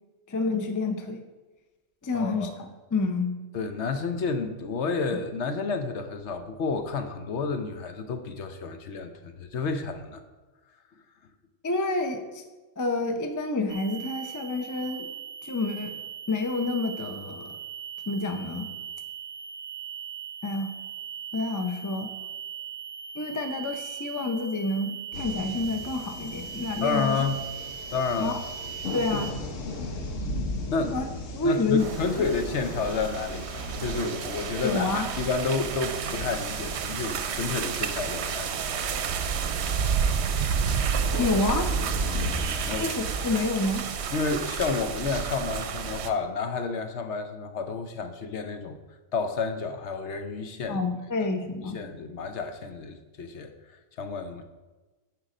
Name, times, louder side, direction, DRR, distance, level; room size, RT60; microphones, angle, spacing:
voice 1, 0.3-1.2 2.0-3.4 11.6-12.4 12.8-15.1 15.4-16.0 16.3-17.5 18.1-18.7 20.4-20.7 21.3-22.1 23.1-27.2 28.2-28.4 28.9-29.3 30.9-31.0 31.3-31.8 32.2-32.4 34.6-35.1 41.2-41.7 42.8-43.9 50.7-51.8, left 3 dB, 20° left, 6 dB, 0.5 m, -28 dB
voice 2, 2.1-2.6 3.5-10.2 26.8-27.4 27.9-28.4 30.7-31.0 31.4-39.3 42.7-42.9 44.1-48.8 49.1-50.8 51.6-54.4, left 4 dB, 70° left, 7 dB, 1.0 m, -30 dB
sound 1, 13.7-29.3, right 8 dB, 30° right, 1.0 m, -39 dB
sound 2, 25.1-44.9, left 2 dB, 85° left, 1.4 m, -38 dB
sound 3, 31.8-46.1, right 7 dB, 65° right, 0.9 m, -30 dB
10.5 x 4.7 x 5.0 m, 1.2 s
omnidirectional pair, 1.3 m